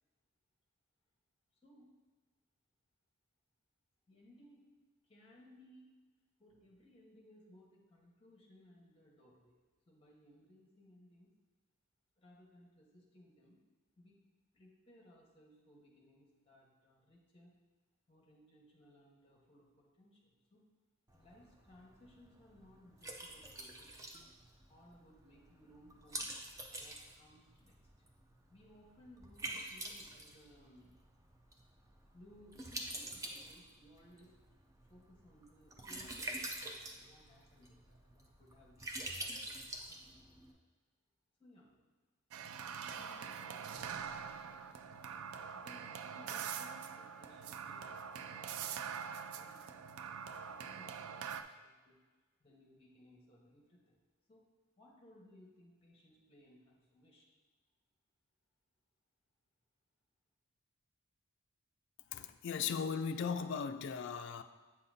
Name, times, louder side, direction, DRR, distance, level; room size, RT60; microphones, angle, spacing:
voice 1, 1.6-1.9 4.1-4.6 5.0-6.0 6.4-9.6 9.9-11.3 12.2-13.6 14.0-14.3 14.5-17.5 18.1-20.6 21.1-24.0 24.7-26.2 26.7-27.8 28.5-31.0 32.1-34.3 34.9-39.0 39.3-40.3 41.4-41.8 42.4-44.8 45.5-49.7 50.3-52.0 52.4-54.0 54.3-54.4 54.8-57.3, left 1 dB, 25° left, -2 dB, 1.2 m, -63 dB
Liquid, 21.1-40.5, right 1 dB, 15° right, 0.5 m, -47 dB
sound 1, 42.3-51.4, right 7 dB, 70° right, 0.3 m, -44 dB
voice 2, 62.1-64.4, left 6 dB, 55° left, 9 dB, 0.3 m, -37 dB
8.2 x 5.5 x 2.7 m, 1.3 s
head